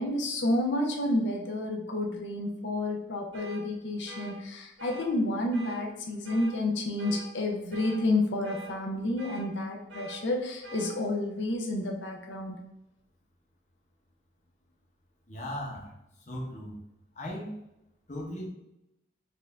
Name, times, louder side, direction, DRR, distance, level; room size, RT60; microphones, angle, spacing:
voice 1, 0.0-12.5, left 1 dB, 75° left, 0 dB, 0.6 m, -30 dB
sound 1, 3.3-3.6 4.1-4.3 4.8-5.1 5.5-5.8 6.2-6.5 7.0-7.2 7.7-8.0 8.4-8.7 9.2-9.4 9.9-10.2 10.6-10.9, right 2 dB, 80° right, 1.0 m, -44 dB
voice 2, 15.3-15.9 16.3-16.8 17.2-17.5 18.1-18.5, left 1 dB, 40° left, -2 dB, 0.9 m, -37 dB
4.3 x 2.6 x 3.4 m, 0.89 s
head